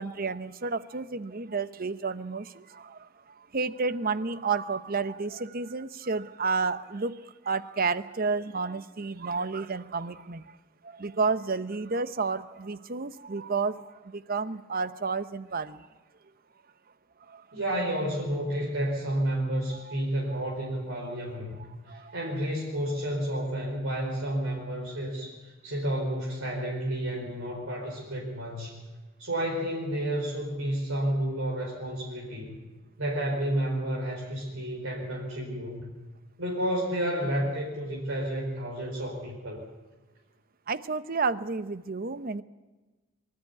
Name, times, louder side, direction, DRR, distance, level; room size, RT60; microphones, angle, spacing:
voice 1, 0.0-10.5 10.8-15.9 17.3-17.4 19.7-20.0 20.3-20.4 21.9-22.2 40.7-42.4, right 4 dB, 45° right, 14 dB, 0.8 m, -31 dB
voice 2, 17.5-21.6 21.9-28.8 29.2-32.5 33.0-35.9 36.4-39.6, right 1 dB, 85° right, -3 dB, 4.9 m, -31 dB
24.5 x 13.5 x 9.6 m, 1.2 s
head